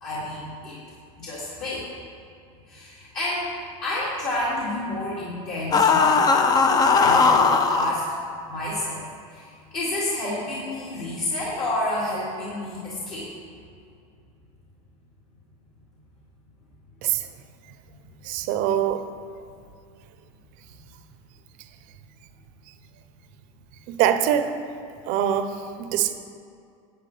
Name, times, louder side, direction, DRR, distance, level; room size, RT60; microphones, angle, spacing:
voice 1, 0.0-0.8 1.2-1.8 2.7-3.5 3.8-6.2 6.9-8.2 8.5-13.3, left 1 dB, 50° left, -9 dB, 2.4 m, -30 dB
sound 1, 5.7-7.9, left 4 dB, 20° left, 0.5 m, -18 dB
voice 2, 18.2-19.0 23.9-24.5 25.1-26.1, right 10 dB, 50° right, 9 dB, 0.6 m, -23 dB
10.0 x 8.3 x 3.3 m, 2.4 s
supercardioid pair, 125°, 17 cm